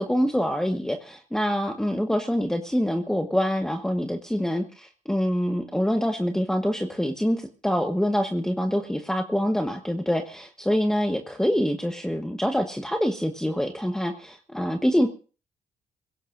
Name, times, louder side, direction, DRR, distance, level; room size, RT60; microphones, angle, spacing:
voice 1, 0.0-15.1, equal, 5° left, 5 dB, 1.1 m, -25 dB
23.5 x 17.0 x 2.6 m, 0.37 s
cardioid pair, 95°, 13 cm